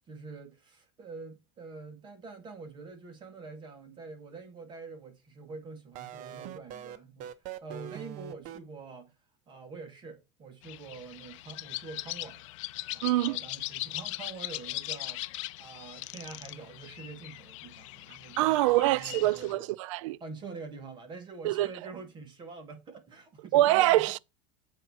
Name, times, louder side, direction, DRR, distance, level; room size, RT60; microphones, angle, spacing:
voice 1, 0.1-7.3 7.6-9.1 9.5-12.4 12.9-15.2 15.6-19.7 20.2-24.1, right 4 dB, 30° right, 1.9 m, -45 dB
sound 1, 5.9-8.6, right 10 dB, 50° right, 0.8 m, -42 dB
sound 2, 10.6-19.5, left 18 dB, 80° left, 0.5 m, -40 dB
voice 2, 13.0-13.4 18.4-20.2 21.4-21.7 23.5-24.2, right 16 dB, 80° right, 0.4 m, -24 dB
7.8 x 3.8 x 6.2 m
supercardioid pair, 135°, 16 cm